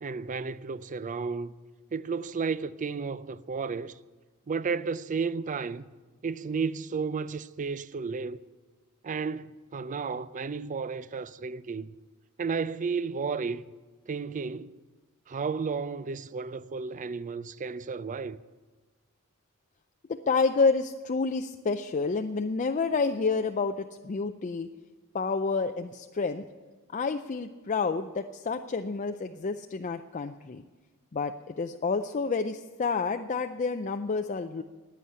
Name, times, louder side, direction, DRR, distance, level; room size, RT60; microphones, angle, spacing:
voice 1, 0.0-1.5 1.9-4.0 4.5-5.9 6.2-8.4 9.0-11.9 12.4-13.6 14.1-14.8 15.3-18.4, right 5 dB, 35° right, 0.4 m, -33 dB
voice 2, 20.1-24.7 25.1-26.4 26.9-30.6 31.1-34.6, left 4 dB, 35° left, 0.4 m, -29 dB
15.0 x 9.7 x 8.7 m
head